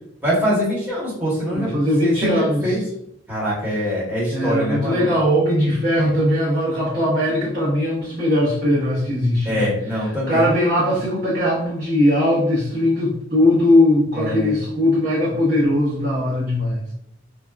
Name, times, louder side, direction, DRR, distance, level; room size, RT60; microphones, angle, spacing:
voice 1, 0.2-2.8 3.3-5.1 6.0-6.1 9.4-10.5 14.1-14.5, equal, 10° right, -9 dB, 1.0 m, -23 dB
voice 2, 1.5-2.8 4.3-9.7 10.3-16.8, left 1 dB, 45° right, -8 dB, 0.7 m, -19 dB
3.5 x 2.1 x 2.3 m, 0.72 s
head